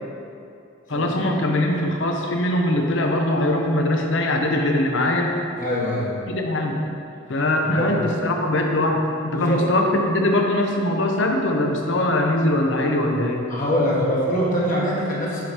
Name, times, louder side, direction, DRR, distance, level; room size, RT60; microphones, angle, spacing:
voice 1, 0.9-5.3 6.3-6.8 7.3-13.5, left 1 dB, 60° left, 2 dB, 0.8 m, -21 dB
voice 2, 5.6-6.1 7.6-8.0 9.3-9.7 13.5-15.4, equal, 40° left, -5 dB, 1.4 m, -23 dB
7.7 x 5.1 x 4.3 m, 2.6 s
head